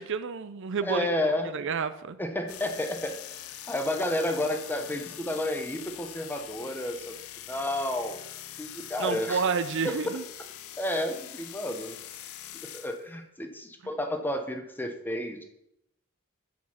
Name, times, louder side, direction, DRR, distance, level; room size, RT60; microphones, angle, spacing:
voice 1, 0.0-1.1 1.5-2.2 9.0-10.2, right 5 dB, 60° right, 13 dB, 0.5 m, -30 dB
voice 2, 0.8-1.6 2.2-7.2 7.5-8.2 8.6-9.4 9.8-10.0 10.8-12.0 12.7-15.4, left 1 dB, 10° left, 6 dB, 0.8 m, -31 dB
sound 1, 2.5-13.0, left 12 dB, 75° left, 0.6 m, -43 dB
7.4 x 6.2 x 5.7 m, 0.80 s
head